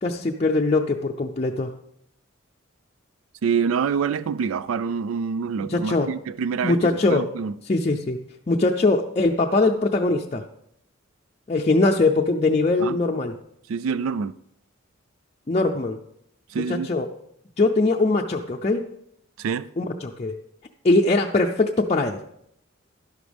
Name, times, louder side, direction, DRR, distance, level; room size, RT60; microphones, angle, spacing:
voice 1, 0.0-1.7 5.6-6.1 6.6-7.3 7.7-8.2 8.5-10.4 11.5-13.4 15.5-16.0 16.7-17.1 17.6-18.9 19.8-20.4 20.8-22.2, left 2 dB, 30° left, 0.5 m, -21 dB
voice 2, 3.4-6.8 7.1-7.5 12.8-13.0 13.7-14.3 16.5-16.9 19.4-19.7, right 6 dB, 85° right, 0.4 m, -26 dB
11.5 x 11.0 x 3.5 m
head